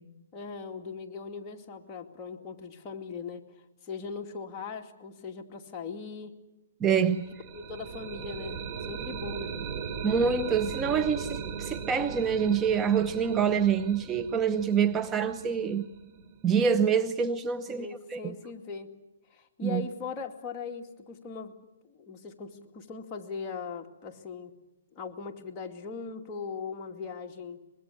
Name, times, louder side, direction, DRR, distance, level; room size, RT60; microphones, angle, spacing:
voice 1, 0.3-3.4 3.8-6.3 7.5-9.5 17.7-18.9 19.3-21.5 21.8-24.5 24.9-27.6, left 5 dB, 25° left, 2 dB, 2.4 m, -39 dB
voice 2, 6.8-7.3 10.0-15.9 16.4-18.3 19.6-19.8, right 7 dB, 15° right, 9 dB, 0.8 m, -26 dB
sound 1, 7.1-16.9, right 6 dB, 40° right, 3.2 m, -38 dB
24.5 x 21.5 x 8.5 m, 0.96 s
hypercardioid pair, 145°, 0 cm